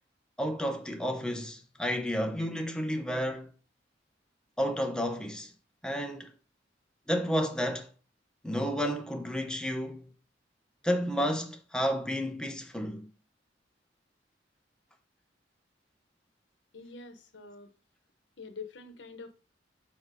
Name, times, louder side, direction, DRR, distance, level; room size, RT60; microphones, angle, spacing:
voice 1, 0.4-3.5 4.6-5.5 5.8-6.3 7.1-7.9 8.4-10.1 10.8-13.1, equal, 5° left, 0.7 m, -31 dB
voice 2, 16.7-17.7 18.4-19.3, left 4 dB, 85° left, 0.9 m, -45 dB
4.4 x 4.4 x 4.9 m
head